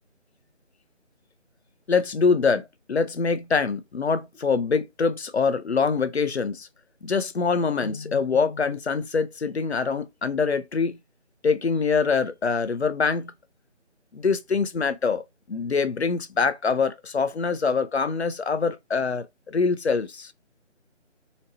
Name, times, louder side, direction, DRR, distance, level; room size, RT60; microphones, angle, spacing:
voice 1, 1.9-6.7 7.0-11.0 11.4-13.3 14.1-15.2 15.5-20.3, left 5 dB, 60° left, 0.5 m, -24 dB
4.1 x 2.0 x 2.7 m
figure-of-eight pair, 160°, 37 cm